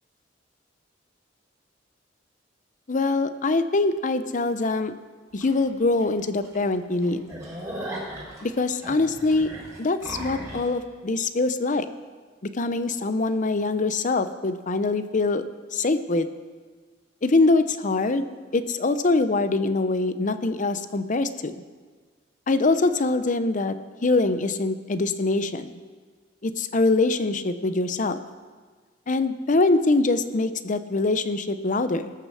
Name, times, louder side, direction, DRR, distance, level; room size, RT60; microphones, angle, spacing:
voice 1, 2.9-4.9 5.3-7.3 8.4-9.5 9.8-11.9 12.4-15.4 15.7-16.3 17.2-18.2 18.5-21.6 22.5-23.7 24.0-25.7 26.4-28.2 29.1-32.1, left 3 dB, 45° left, 11 dB, 0.7 m, -23 dB
sound 1, 5.4-5.5 6.0-6.1 6.4-6.6 6.9-10.7, right 1 dB, 15° right, 3.8 m, -37 dB
19.5 x 6.7 x 6.3 m, 1.5 s
head